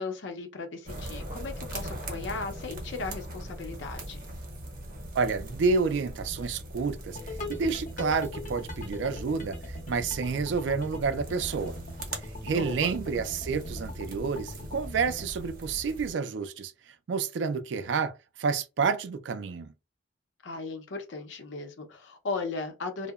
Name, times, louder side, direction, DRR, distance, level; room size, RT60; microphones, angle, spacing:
voice 1, 0.0-4.2 12.5-12.9 20.4-23.1, left 3 dB, 80° left, 0.6 m, -36 dB
sound 1, 0.9-16.1, right 1 dB, 50° right, 0.7 m, -41 dB
voice 2, 5.1-11.8 12.4-16.7 17.1-18.1 18.4-19.7, right 5 dB, 75° right, 0.4 m, -29 dB
sound 2, 7.1-15.3, left 1 dB, 45° left, 0.7 m, -41 dB
2.8 x 2.1 x 2.3 m
head